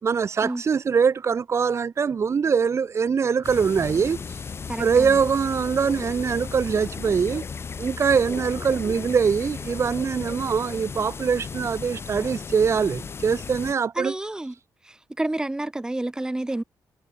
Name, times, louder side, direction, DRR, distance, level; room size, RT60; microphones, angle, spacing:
voice 1, 0.0-4.4 4.8-7.4 7.8-14.1, right 6 dB, 40° right, 2.8 m, -23 dB
sound 1, 3.4-13.7, left 5 dB, 35° left, 2.5 m, -35 dB
voice 2, 4.7-5.2 13.9-14.5 14.8-16.6, right 1 dB, 10° right, 2.7 m, -29 dB
wide cardioid pair, 160°, 7 cm